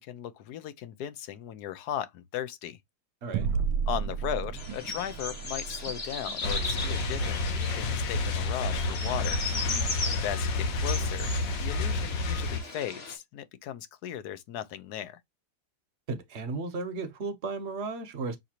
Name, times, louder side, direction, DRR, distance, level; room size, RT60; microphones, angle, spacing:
voice 1, 0.0-2.8 3.9-9.4 10.2-15.2, left 10 dB, 70° left, 1.1 m, -37 dB
sound 1, 3.3-8.2, right 6 dB, 85° right, 1.3 m, -34 dB
sound 2, 4.6-13.2, left 3 dB, 35° left, 1.5 m, -37 dB
sound 3, 6.4-12.6, left 2 dB, 85° left, 1.6 m, -30 dB
voice 2, 16.1-18.4, right 3 dB, 45° right, 1.0 m, -34 dB
6.5 x 2.8 x 2.9 m
omnidirectional pair, 1.9 m